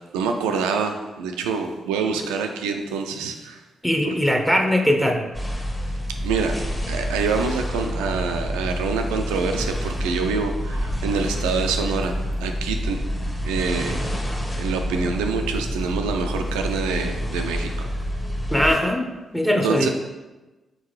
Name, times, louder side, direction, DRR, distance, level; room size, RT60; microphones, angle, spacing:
voice 1, 0.1-3.6 4.1-4.2 6.2-12.1 12.4-13.0 13.4-14.0 14.6-17.9 19.6-19.9, right 5 dB, 85° right, 5 dB, 0.3 m, -26 dB
voice 2, 3.8-5.2 18.5-19.9, equal, ahead, 3 dB, 0.7 m, -21 dB
sound 1, 5.3-18.8, equal, 20° left, 1.2 m, -28 dB
3.9 x 3.7 x 3.1 m, 1.1 s
hypercardioid pair, 40°, 0 cm